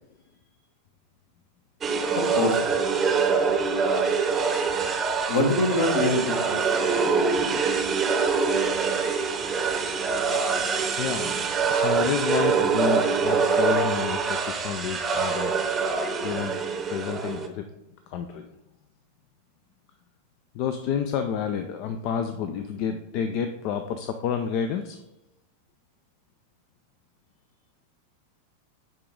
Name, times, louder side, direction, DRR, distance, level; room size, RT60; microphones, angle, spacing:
sound 1, 1.8-17.5, right 5 dB, 20° right, 0.8 m, -24 dB
voice 1, 2.1-2.6 5.3-6.6, left 1 dB, 65° left, 1 dB, 1.6 m, -24 dB
voice 2, 11.0-15.5 16.2-17.7 18.1-18.5 20.5-25.0, left 8 dB, 45° left, 8 dB, 0.4 m, -30 dB
10.0 x 3.8 x 3.8 m, 0.90 s
figure-of-eight pair, 90°, 0 cm